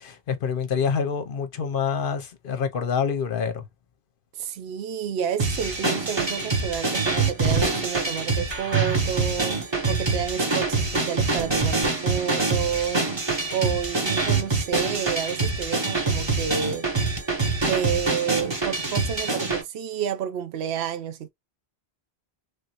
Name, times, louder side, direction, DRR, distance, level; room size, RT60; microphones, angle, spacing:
voice 1, 0.0-3.7, left 6 dB, 60° left, 0.8 m, -26 dB
voice 2, 4.4-16.9 17.7-21.3, right 8 dB, 85° right, 0.9 m, -30 dB
sound 1, 5.4-19.6, right 3 dB, 25° right, 1.0 m, -25 dB
3.4 x 2.6 x 2.9 m
omnidirectional pair, 1.1 m